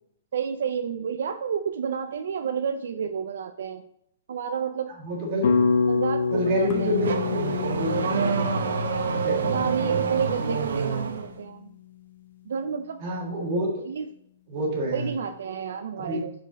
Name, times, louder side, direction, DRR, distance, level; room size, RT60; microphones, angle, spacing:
voice 1, 0.3-3.8 4.3-4.9 5.9-7.1 9.5-11.7 12.5-13.0 13.9-14.1 14.9-16.3, right 7 dB, 65° right, 8 dB, 0.4 m, -30 dB
voice 2, 5.0-5.5 6.3-8.5 9.1-9.5 13.0-13.7 14.5-15.1 16.1-16.2, equal, 25° right, -2 dB, 1.7 m, -28 dB
sound 1, 5.4-9.7, left 4 dB, 60° left, 1.0 m, -26 dB
Car / Accelerating revving vroom, 6.3-11.3, right 5 dB, 80° right, 0.8 m, -27 dB
sound 2, 6.7-13.2, left 17 dB, 20° left, 0.6 m, -38 dB
5.1 x 4.5 x 4.9 m, 0.73 s
hypercardioid pair, 175°, 0 cm